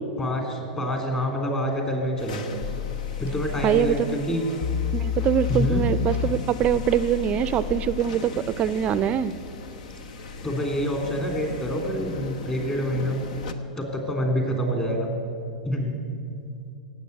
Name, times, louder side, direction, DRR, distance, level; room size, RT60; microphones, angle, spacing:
voice 1, 0.2-2.4 3.2-4.5 5.5-5.8 10.4-13.2 13.8-15.1 15.6-16.0, equal, 20° left, 1 dB, 3.3 m, -26 dB
sound 1, 2.2-13.5, left 4 dB, 65° left, 1.1 m, -39 dB
sound 2, 2.6-4.1 4.6-8.1, left 9 dB, 50° left, 0.6 m, -30 dB
voice 2, 3.6-4.4 4.9-9.4, right 9 dB, 30° right, 15 dB, 0.4 m, -24 dB
17.5 x 8.0 x 8.4 m, 2.6 s
hypercardioid pair, 105°, 4 cm